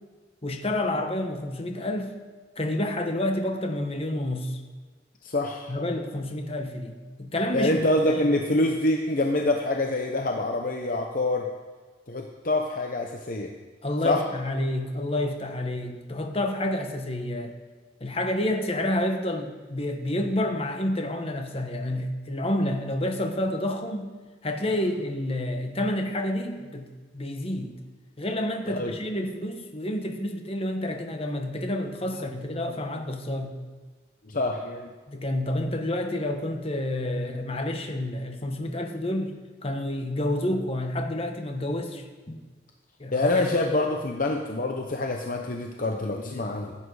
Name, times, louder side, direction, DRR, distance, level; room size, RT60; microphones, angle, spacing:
voice 1, 0.4-2.1 2.6-4.6 5.7-7.9 13.8-17.5 18.0-24.1 24.4-26.9 27.1-27.7 28.2-33.5 35.1-39.3 39.6-42.3 43.0-43.5 43.7-43.9, left 1 dB, 30° left, 4 dB, 1.2 m, -29 dB
voice 2, 5.2-5.7 7.5-11.5 12.1-13.5 14.0-14.2 28.7-28.9 32.6-32.8 34.3-34.9 43.1-46.8, left 2 dB, 45° left, 2 dB, 0.8 m, -26 dB
15.5 x 8.7 x 4.8 m, 1.4 s
head